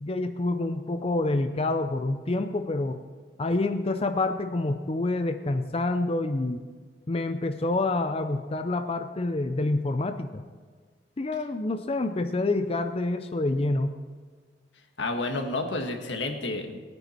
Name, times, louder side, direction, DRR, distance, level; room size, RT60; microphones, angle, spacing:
voice 1, 0.0-3.0 3.4-6.6 7.1-10.4 11.2-13.9, left 2 dB, 35° left, 7 dB, 0.5 m, -27 dB
voice 2, 15.0-16.8, left 2 dB, 90° left, 4 dB, 1.7 m, -30 dB
20.0 x 9.2 x 4.4 m, 1.5 s
head